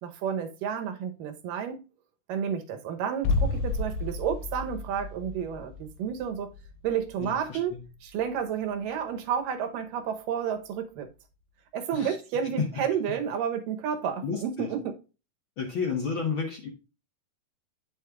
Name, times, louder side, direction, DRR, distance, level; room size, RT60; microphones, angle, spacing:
voice 1, 0.0-1.8 2.3-6.5 6.8-11.1 11.7-14.9, right 8 dB, 75° right, 2.6 m, -31 dB
sound 1, 3.2-9.0 9.2-9.3, left 3 dB, 75° left, 2.2 m, -33 dB
voice 2, 7.2-7.8 11.9-12.1 12.6-12.7 14.2-14.7 15.6-16.7, left 6 dB, 55° left, 1.5 m, -31 dB
8.7 x 6.6 x 2.4 m
omnidirectional pair, 4.0 m